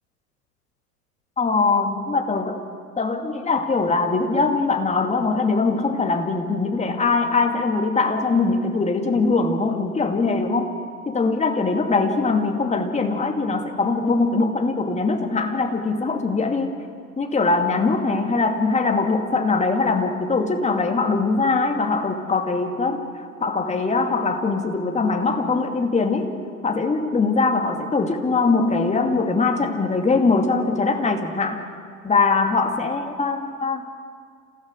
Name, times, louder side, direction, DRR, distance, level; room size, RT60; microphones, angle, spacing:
voice 1, 1.4-2.6 3.0-10.7 11.1-16.7 17.2-23.0 23.4-26.3 26.6-31.6 32.0-33.8, left 3 dB, 15° left, 4 dB, 2.3 m, -22 dB
28.0 x 16.0 x 6.5 m, 2.1 s
figure-of-eight pair, 90°, 45 cm